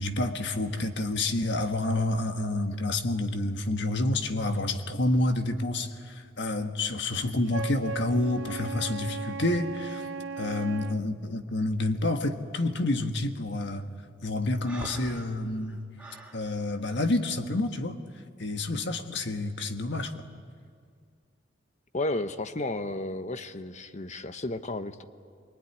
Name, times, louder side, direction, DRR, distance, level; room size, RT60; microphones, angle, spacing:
voice 1, 0.0-10.1 10.4-13.9 14.2-15.8 16.3-18.0 18.4-20.2, left 2 dB, 60° left, 6 dB, 1.6 m, -29 dB
Wind instrument woodwind instrument, 7.5-11.0, right 5 dB, 75° right, 0.6 m, -37 dB
Breathing, 14.6-16.4, right 1 dB, 5° right, 2.3 m, -42 dB
voice 2, 21.9-25.1, left 2 dB, 35° left, 10 dB, 0.9 m, -33 dB
24.0 x 23.0 x 9.8 m, 2.2 s
head